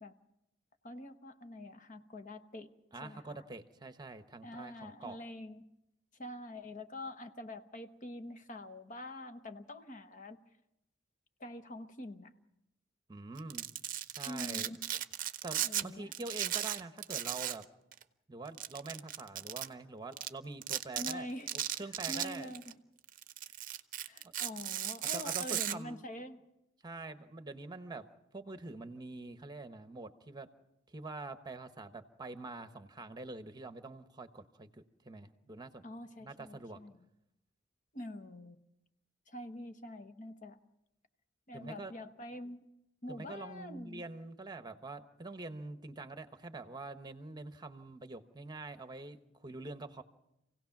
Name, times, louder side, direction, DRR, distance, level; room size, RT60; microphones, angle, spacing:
voice 1, 0.8-2.7 3.0-3.4 4.4-5.6 6.2-10.4 11.4-12.3 14.2-14.8 15.6-16.1 21.0-21.5 22.1-22.8 24.1-26.4 35.8-37.1 37.9-38.6 39.3-40.6 41.5-42.6 43.0-44.0, left 1 dB, 40° left, 9 dB, 1.1 m, -45 dB
voice 2, 2.9-5.2 13.1-13.7 14.2-14.7 15.4-17.6 18.3-21.3 21.5-22.5 25.1-26.0 26.8-30.5 30.9-35.8 36.2-36.8 41.5-41.9 43.1-50.0, right 3 dB, 20° right, 9 dB, 1.0 m, -45 dB
Domestic sounds home sounds, 13.4-15.8 16.1-17.6 17.9-18.0 18.6-19.7 20.2-20.3 20.6-21.1 21.5-22.7 23.1-25.7, right 12 dB, 45° right, 0.7 m, -36 dB
27.5 x 17.0 x 5.9 m, 0.85 s
head